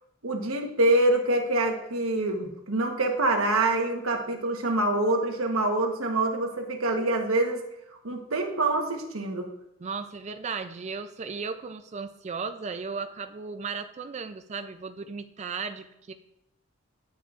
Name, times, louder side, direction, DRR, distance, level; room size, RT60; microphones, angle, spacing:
voice 1, 0.2-7.6 8.0-9.5, right 2 dB, 70° right, 4 dB, 1.1 m, -25 dB
voice 2, 9.8-16.1, right 5 dB, 30° right, 9 dB, 0.4 m, -35 dB
10.0 x 7.2 x 2.5 m, 0.82 s
head